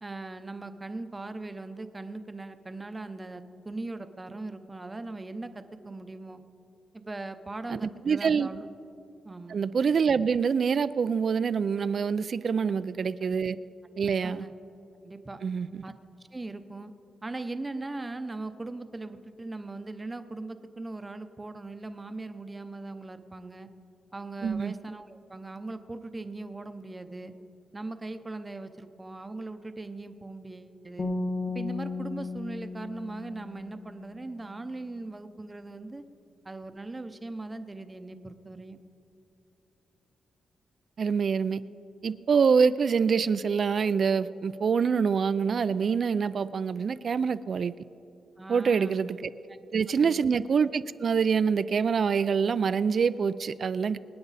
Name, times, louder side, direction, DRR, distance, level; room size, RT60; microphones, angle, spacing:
voice 1, 0.0-6.4 6.9-8.7 9.2-9.6 12.6-12.8 13.2-13.4 14.2-14.5 15.0-15.4 15.8-16.9 17.2-23.7 24.1-27.3 27.7-31.1 31.5-36.0 36.4-38.8 48.4-49.0 50.0-50.2, right 2 dB, 20° right, 9 dB, 0.7 m, -39 dB
voice 2, 8.0-8.5 9.5-13.6 14.0-14.5 15.4-15.8 24.4-24.7 41.0-41.6 42.0-47.7 48.5-49.3 49.7-54.0, right 6 dB, 50° right, 14 dB, 0.3 m, -25 dB
sound 1, 31.0-34.2, left 3 dB, 30° left, 1.5 m, -34 dB
25.5 x 9.5 x 4.1 m, 2.8 s
wide cardioid pair, 125°, 0 cm